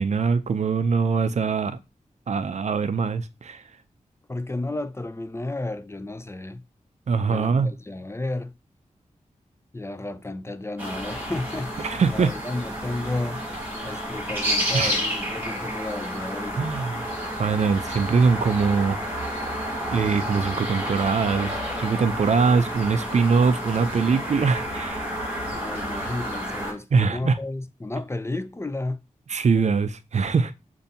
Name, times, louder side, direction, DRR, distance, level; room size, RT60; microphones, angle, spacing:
voice 1, 0.0-1.8 2.3-3.6 7.1-7.7 11.8-12.3 14.7-14.9 16.6-16.9 17.4-19.0 19.9-25.1 26.9-27.4 29.3-30.5, right 5 dB, 60° right, 0.4 m, -22 dB
voice 2, 4.3-6.6 7.3-8.5 9.7-13.4 13.8-16.8 25.5-29.0, left 2 dB, 20° left, 0.3 m, -32 dB
sound 1, 10.8-26.7, equal, 15° right, 2.0 m, -30 dB
6.7 x 2.6 x 2.7 m
wide cardioid pair, 65°, 13 cm